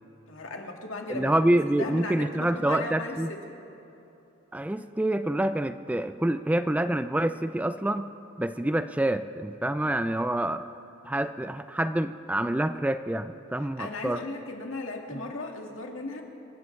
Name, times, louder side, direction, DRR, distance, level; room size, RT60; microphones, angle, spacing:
voice 1, 0.3-1.4 1.8-3.5 13.6-16.2, left 2 dB, 85° left, 2 dB, 1.9 m, -36 dB
voice 2, 1.1-3.3 4.5-8.1 8.4-10.6 11.0-14.2 15.1-15.2, right 1 dB, 5° right, 11 dB, 0.3 m, -27 dB
26.5 x 15.5 x 3.2 m, 2.9 s
head